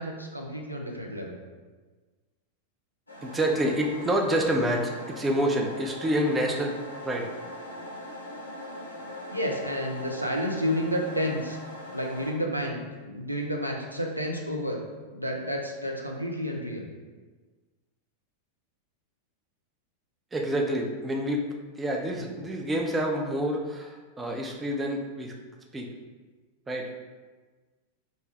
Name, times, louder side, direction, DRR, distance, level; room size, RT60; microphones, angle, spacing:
voice 1, 0.0-1.4 9.3-11.6 11.9-14.8 15.1-16.8 22.2-22.3, equal, 90° right, 1 dB, 0.4 m, -30 dB
sound 1, 3.1-12.3, left 1 dB, 85° left, 0.6 m, -41 dB
voice 2, 3.2-7.3 20.3-21.5 21.8-25.3 25.7-25.9 26.7-26.9, right 1 dB, 15° right, 1 dB, 0.4 m, -28 dB
2.5 x 2.2 x 3.3 m, 1.3 s
figure-of-eight pair, 90°, 0 cm